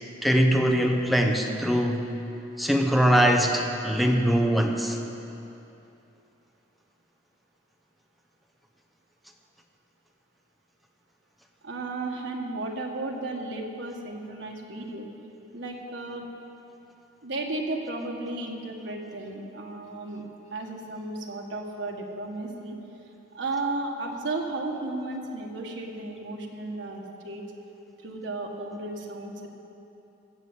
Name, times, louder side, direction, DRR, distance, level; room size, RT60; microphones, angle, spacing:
voice 1, 0.2-2.1 2.6-5.0, equal, ahead, 3 dB, 0.8 m, -22 dB
voice 2, 11.6-15.1 15.5-16.3 17.2-22.8 23.3-27.4 28.0-29.5, right 2 dB, 80° right, 0 dB, 1.6 m, -34 dB
15.0 x 7.1 x 8.0 m, 2.9 s
head